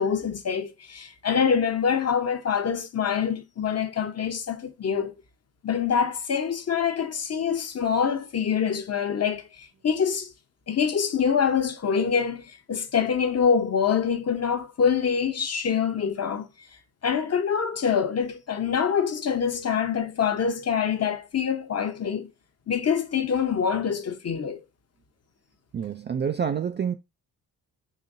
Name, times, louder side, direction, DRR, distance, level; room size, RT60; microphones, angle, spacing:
voice 1, 0.0-5.1 5.6-10.3 10.7-16.5 17.0-22.3 22.7-24.6, left 7 dB, 35° left, 0.8 m, -25 dB
voice 2, 25.7-26.9, right 7 dB, 25° right, 0.3 m, -27 dB
4.0 x 2.9 x 2.6 m
hypercardioid pair, 45°, 44 cm